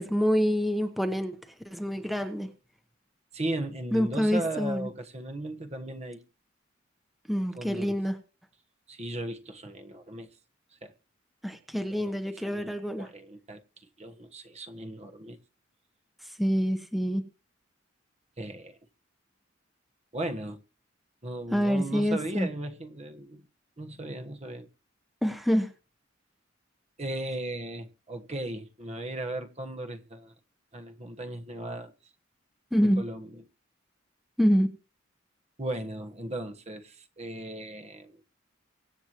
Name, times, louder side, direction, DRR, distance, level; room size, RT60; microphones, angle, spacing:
voice 1, 0.0-1.4 1.6-2.5 3.9-4.9 7.3-8.2 11.4-13.1 16.2-17.2 21.5-22.5 25.2-25.7 32.7-33.0 34.4-34.7, equal, ahead, 1.0 m, -26 dB
voice 2, 3.3-6.2 7.6-8.0 8.9-10.3 10.8-10.9 11.9-13.6 14.0-15.4 18.4-18.8 20.1-20.6 21.2-23.4 23.8-24.7 27.0-30.3 30.7-31.9 33.0-33.4 35.6-38.2, right 1 dB, 35° right, 1.2 m, -37 dB
24.0 x 8.1 x 3.0 m
head